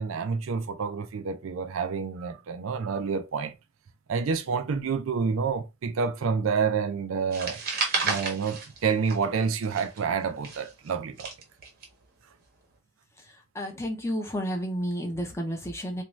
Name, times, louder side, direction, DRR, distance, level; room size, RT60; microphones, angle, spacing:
voice 1, 0.0-3.5 4.1-7.6 8.0-11.3, right 5 dB, 70° right, 0.4 m, -28 dB
sound 1, 7.3-9.4 9.6-11.8, right 4 dB, 45° right, 0.8 m, -31 dB
voice 2, 13.5-16.0, equal, 15° left, 0.5 m, -31 dB
2.6 x 2.2 x 3.0 m
head